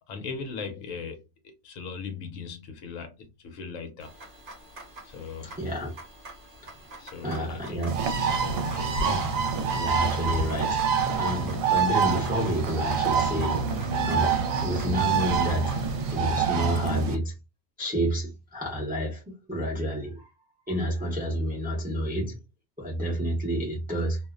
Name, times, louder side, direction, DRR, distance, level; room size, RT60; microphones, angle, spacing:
voice 1, 0.1-4.1 5.0-5.6 7.0-9.1, left 5 dB, 75° left, 0.9 m, -39 dB
sound 1, 4.0-16.2, right 2 dB, 45° right, 0.8 m, -46 dB
voice 2, 5.4-5.9 7.2-8.0 9.0-9.4 9.7-13.6 14.0-15.7 16.1-17.3 17.8-19.2 19.5-20.2 20.7-22.4 22.8-24.2, equal, 10° right, 0.5 m, -29 dB
Bird, 7.9-17.1, right 6 dB, 75° right, 0.9 m, -26 dB
2.5 x 2.0 x 2.3 m
omnidirectional pair, 1.5 m